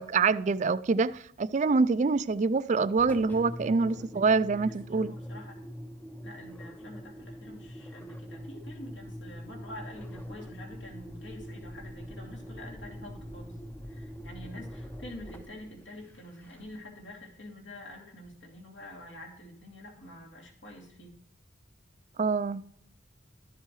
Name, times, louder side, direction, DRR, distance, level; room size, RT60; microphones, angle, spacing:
voice 1, 0.0-5.1 22.2-22.6, right 4 dB, 40° right, 0.3 m, -26 dB
Engine, 2.9-16.9, equal, 10° left, 0.6 m, -43 dB
voice 2, 4.7-5.6 6.2-13.5 13.9-21.2, left 1 dB, 75° left, 2.7 m, -47 dB
13.0 x 7.4 x 3.2 m
head